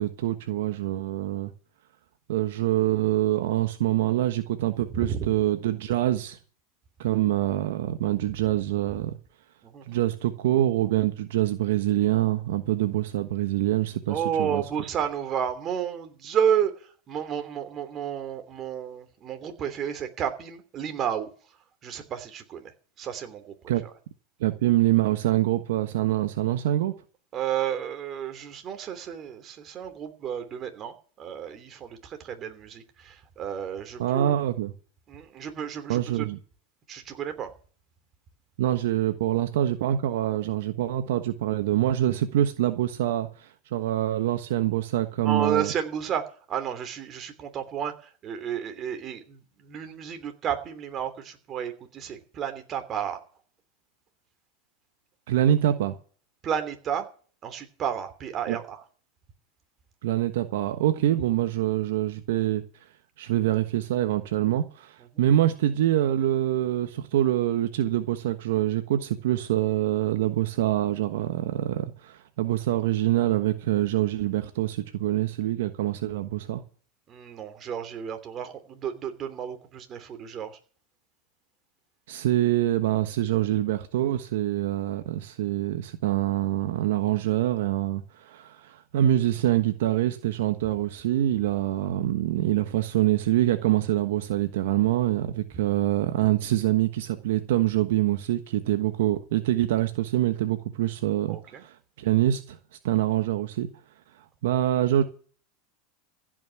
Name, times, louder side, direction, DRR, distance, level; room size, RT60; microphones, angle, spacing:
voice 1, 0.0-1.5 2.3-6.4 7.0-9.1 9.9-14.6 23.7-23.8 24.4-26.9 34.0-34.7 35.9-36.4 38.6-45.7 55.3-55.9 58.5-58.6 60.0-62.6 63.2-76.6 82.1-102.6 102.8-103.7 104.2-105.0, right 13 dB, 75° right, 1.2 m, -25 dB
voice 2, 4.9-5.3 9.7-10.0 14.1-16.7 17.1-21.3 21.8-22.7 23.0-23.5 27.3-34.3 35.1-36.3 36.9-37.5 45.2-46.2 46.5-47.9 48.2-53.2 56.4-57.1 57.4-58.8 77.1-80.6 101.3-101.6, right 8 dB, 35° right, 3.0 m, -31 dB
15.5 x 6.3 x 9.0 m
hypercardioid pair, 105°, 0 cm